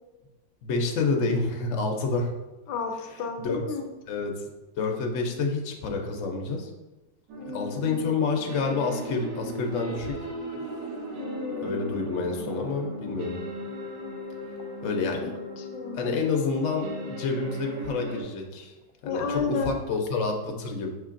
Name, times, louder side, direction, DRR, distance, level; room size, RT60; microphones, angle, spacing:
voice 1, 0.6-2.3 3.4-3.6 4.1-4.4 4.8-6.7 7.5-10.1 11.6-13.3 14.8-15.3 15.9-18.7 19.0-20.9, left 4 dB, 60° left, 2 dB, 0.8 m, -28 dB
voice 2, 2.7-3.9 7.4-8.1 11.2-12.0 15.6-16.2 19.0-19.8, left 4 dB, 80° left, 4 dB, 1.2 m, -32 dB
sound 1, 7.3-18.2, equal, 90° right, 1.4 m, -37 dB
6.5 x 3.1 x 2.5 m, 1.1 s
omnidirectional pair, 1.8 m